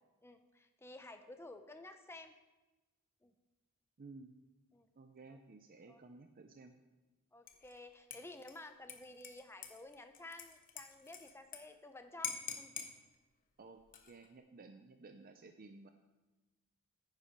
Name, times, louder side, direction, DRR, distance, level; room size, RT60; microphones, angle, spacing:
voice 1, 0.2-2.3 3.2-3.3 4.7-4.9 5.3-5.4 5.9-6.0 7.3-12.7, left 2 dB, 10° left, 7 dB, 0.7 m, -53 dB
voice 2, 4.0-4.3 5.0-6.8 13.6-15.9, right 3 dB, 40° right, 7 dB, 0.5 m, -55 dB
Dishes pots and pans / Liquid, 7.5-7.8 8.1-11.6 11.9-12.0 12.2-12.9 13.8-14.3, left 7 dB, 40° left, 1.0 m, -46 dB
9.8 x 8.1 x 5.1 m, 1.1 s
head